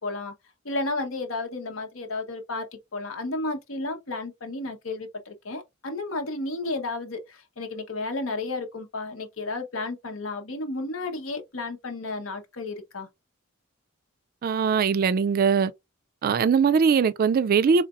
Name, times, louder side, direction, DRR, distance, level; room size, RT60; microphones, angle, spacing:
voice 1, 0.0-0.3 0.6-13.1, left 2 dB, 85° left, 1.0 m, -32 dB
voice 2, 14.4-15.7 16.2-17.9, right 6 dB, 45° right, 0.3 m, -21 dB
4.0 x 3.3 x 2.5 m
head